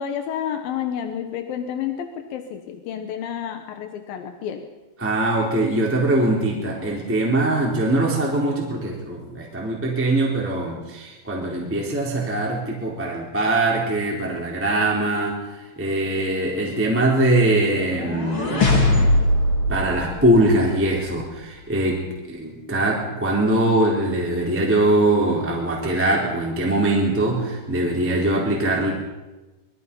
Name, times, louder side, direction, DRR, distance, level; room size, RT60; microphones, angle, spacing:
voice 1, 0.0-4.7, left 8 dB, 70° left, 6 dB, 2.4 m, -30 dB
voice 2, 5.0-18.6 19.0-19.2 19.7-22.0 22.3-28.9, right 1 dB, 5° right, -3 dB, 3.5 m, -22 dB
sound 1, 17.7-20.9, left 1 dB, 30° left, 3.6 m, -21 dB
26.0 x 22.5 x 5.6 m, 1.1 s
omnidirectional pair, 5.6 m